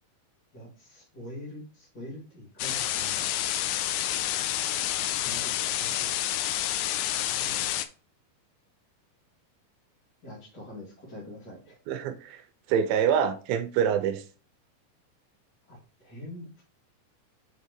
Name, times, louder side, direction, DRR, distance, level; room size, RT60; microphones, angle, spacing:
voice 1, 0.5-3.3 5.2-6.1 7.2-7.7 10.2-11.8 15.7-16.6, left 1 dB, 30° left, 2.5 m, -44 dB
sound 1, 2.6-7.9, left 12 dB, 90° left, 1.9 m, -29 dB
voice 2, 11.9-12.4 12.7-14.2, right 8 dB, 80° right, 2.4 m, -25 dB
6.5 x 5.5 x 3.1 m
omnidirectional pair, 4.4 m